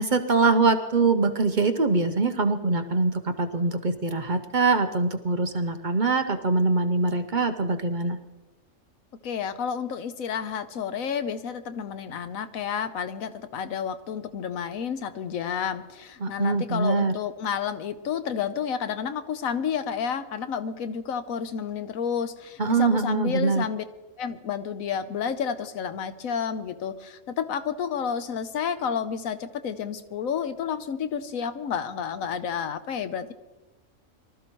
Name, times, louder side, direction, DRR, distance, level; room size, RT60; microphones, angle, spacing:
voice 1, 0.0-8.2 16.2-17.1 22.6-23.6, right 3 dB, 45° right, 6 dB, 0.8 m, -23 dB
voice 2, 9.2-23.8 24.2-33.3, left 7 dB, 85° left, 10 dB, 1.2 m, -30 dB
23.5 x 13.0 x 3.1 m, 1.1 s
omnidirectional pair, 1.4 m